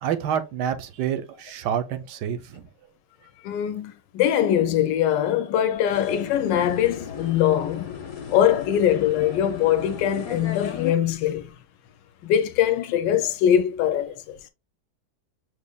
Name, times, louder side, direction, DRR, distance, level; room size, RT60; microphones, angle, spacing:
voice 1, 0.0-2.7, right 9 dB, 75° right, 1.1 m, -28 dB
voice 2, 3.4-7.9 8.3-11.5 12.2-14.3, left 10 dB, 80° left, 1.2 m, -22 dB
sound 1, 5.9-10.9, left 8 dB, 45° left, 0.9 m, -35 dB
6.2 x 3.1 x 2.2 m
omnidirectional pair, 2.0 m